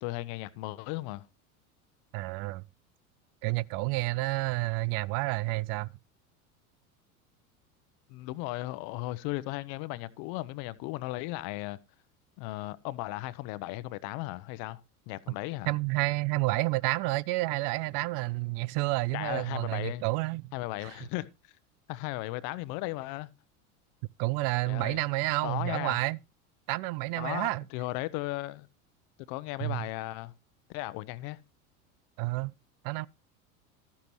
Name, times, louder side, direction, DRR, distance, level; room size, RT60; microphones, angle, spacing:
voice 1, 0.0-1.3 8.1-11.8 12.4-14.8 15.1-15.7 19.1-20.0 20.5-21.3 21.9-23.3 24.7-25.0 25.4-26.0 27.2-28.7 29.3-30.3 30.7-31.4, left 18 dB, 55° left, 0.9 m, -36 dB
voice 2, 2.1-2.6 3.4-5.9 15.7-20.5 20.8-21.0 24.2-26.2 26.7-27.6 29.6-29.9 32.2-32.5 32.8-33.1, right 21 dB, 50° right, 0.5 m, -30 dB
13.0 x 12.0 x 3.1 m
hypercardioid pair, 90°, 43 cm